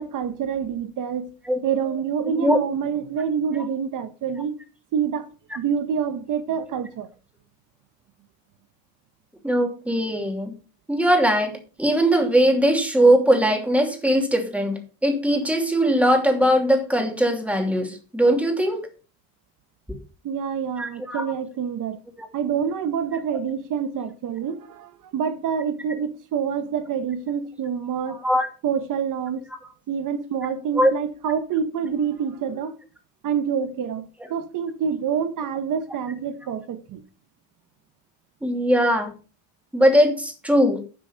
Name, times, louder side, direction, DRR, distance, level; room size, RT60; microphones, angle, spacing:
voice 1, 0.0-1.3 1.6-4.5 4.9-5.3 5.5-7.1 20.2-22.0 22.3-28.2 28.6-29.5 29.9-32.7 33.2-37.0, right 7 dB, 65° right, 1.1 m, -27 dB
voice 2, 9.4-10.5 10.9-18.8 20.8-21.3 22.2-22.3 28.1-28.5 30.7-30.9 34.2-34.3 38.4-39.1 39.7-40.8, equal, 5° right, 2.7 m, -20 dB
11.5 x 6.1 x 5.7 m
cardioid pair, 130°, 34 cm